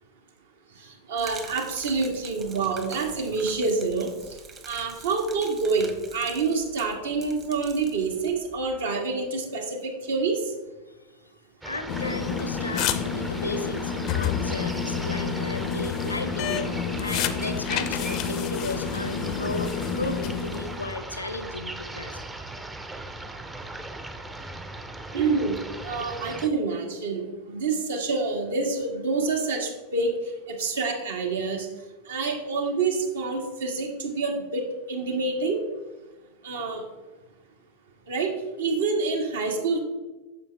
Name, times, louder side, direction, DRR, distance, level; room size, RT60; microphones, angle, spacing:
voice 1, 0.8-4.4 4.7-10.5 25.1-30.2 30.5-31.7 32.1-35.6 36.4-36.8 38.1-39.8, right 4 dB, 65° right, 2 dB, 1.8 m, -27 dB
Gurgling / Liquid, 1.2-8.8, right 5 dB, 25° right, 1.2 m, -46 dB
voice 2, 10.9-11.2 11.6-16.7 17.0-22.1, left 2 dB, 80° left, 9 dB, 0.9 m, -34 dB
sound 1, 11.6-26.5, right 2 dB, 10° right, 0.7 m, -38 dB
sound 2, 11.9-21.0, left 7 dB, 40° left, 0.6 m, -29 dB
9.6 x 6.9 x 3.4 m, 1.2 s
figure-of-eight pair, 90°, 0 cm